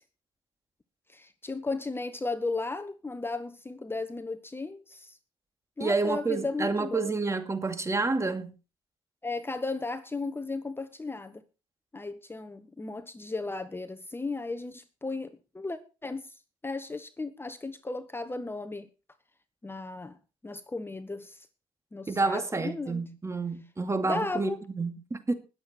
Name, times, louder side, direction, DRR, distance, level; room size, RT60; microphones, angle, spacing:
voice 1, 1.1-5.2 5.8-7.1 9.2-11.4 11.9-16.4 16.6-18.9 19.6-20.2 20.4-21.5 21.9-23.0 24.0-24.6, left 3 dB, 20° left, 1.2 m, -35 dB
voice 2, 5.8-8.5 22.1-25.3, right 3 dB, 25° right, 2.4 m, -29 dB
20.0 x 8.0 x 4.4 m
supercardioid pair, 70°, 13 cm